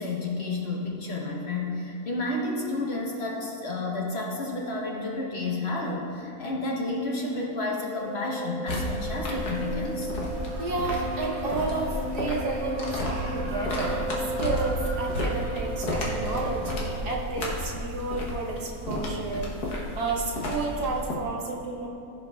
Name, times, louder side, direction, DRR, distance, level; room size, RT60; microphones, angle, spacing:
voice 1, 0.0-10.1 21.3-21.4, left 2 dB, 45° left, -2 dB, 1.1 m, -31 dB
sound 1, 8.0-16.9, right 1 dB, 65° left, 1.7 m, -35 dB
sound 2, 8.7-21.1, left 1 dB, 85° left, 1.7 m, -33 dB
sound 3, 10.3-17.1, right 2 dB, 65° right, 1.3 m, -41 dB
voice 2, 10.6-14.1 14.4-19.5 19.9-21.9, right 3 dB, 90° right, -1 dB, 1.6 m, -31 dB
15.5 x 5.7 x 2.3 m, 3.0 s
omnidirectional pair, 1.7 m